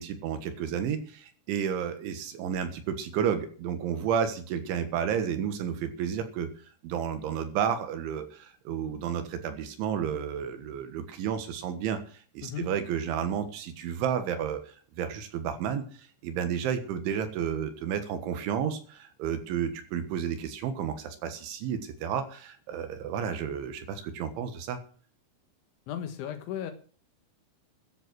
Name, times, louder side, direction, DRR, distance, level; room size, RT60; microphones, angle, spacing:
voice 1, 0.0-6.5 6.8-24.8, right 8 dB, 75° right, 9 dB, 3.7 m, -31 dB
voice 2, 25.9-26.7, left 10 dB, 80° left, 8 dB, 3.7 m, -35 dB
14.5 x 9.9 x 6.2 m, 0.41 s
omnidirectional pair, 5.6 m